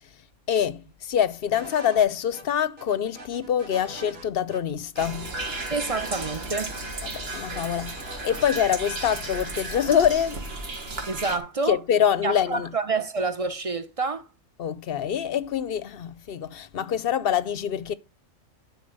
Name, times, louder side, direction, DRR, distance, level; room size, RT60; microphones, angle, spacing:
voice 1, 0.0-5.4 7.0-10.4 11.7-12.7 14.6-17.9, left 9 dB, 55° left, 0.7 m, -25 dB
sound 1, 1.5-2.1 2.3-2.4 2.8-4.3 4.5-4.6 5.0-6.4 6.7-6.8 7.1-9.0 9.3-10.1, right 2 dB, 80° right, 2.1 m, -43 dB
sound 2, 5.0-11.4, right 2 dB, 50° right, 1.8 m, -34 dB
voice 2, 5.7-6.8 11.1-11.8 12.2-14.3, right 4 dB, 35° right, 0.7 m, -28 dB
10.0 x 4.5 x 5.3 m
omnidirectional pair, 1.4 m